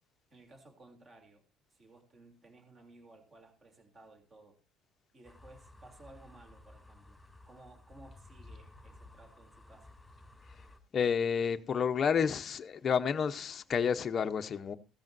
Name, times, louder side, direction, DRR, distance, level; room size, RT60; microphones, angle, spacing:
voice 1, 0.3-1.4 1.7-4.6 5.1-7.2 7.5-9.9, right 2 dB, 25° right, 3.1 m, -57 dB
sound 1, 5.2-10.8, left 2 dB, 5° left, 2.8 m, -55 dB
voice 2, 10.9-14.8, left 7 dB, 30° left, 0.8 m, -30 dB
16.0 x 13.5 x 2.6 m
cardioid pair, 155°, 0 cm